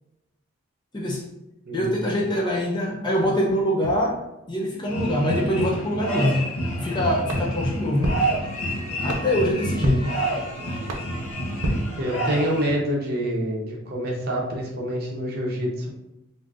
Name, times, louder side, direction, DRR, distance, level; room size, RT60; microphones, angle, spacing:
voice 1, 0.9-1.3 1.7-6.5 6.8-8.2 9.0-10.2, left 1 dB, 20° left, -2 dB, 0.4 m, -24 dB
voice 2, 1.7-2.0 12.0-16.0, equal, 45° right, -2 dB, 0.7 m, -27 dB
sound 1, 4.9-12.7, right 1 dB, 85° left, 0.7 m, -28 dB
sound 2, 7.3-12.6, right 1 dB, 80° right, 0.6 m, -32 dB
3.6 x 2.5 x 2.4 m, 0.90 s
head